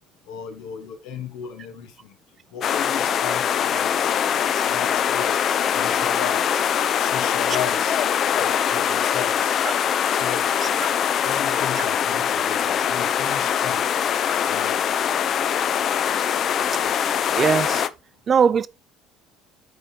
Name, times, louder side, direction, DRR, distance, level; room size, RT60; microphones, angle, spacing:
voice 1, 0.3-1.9 2.5-4.3 4.7-5.4 5.7-6.6 7.0-8.0 8.3-9.6 10.1-10.5 11.2-13.8 14.5-14.8, left 7 dB, 80° left, 1.2 m, -35 dB
sound 1, 2.6-17.9, left 8 dB, 45° left, 0.4 m, -22 dB
voice 2, 17.4-17.8 18.3-18.7, right 6 dB, 35° right, 0.3 m, -20 dB
9.6 x 3.6 x 2.8 m
cardioid pair, 120°, 0 cm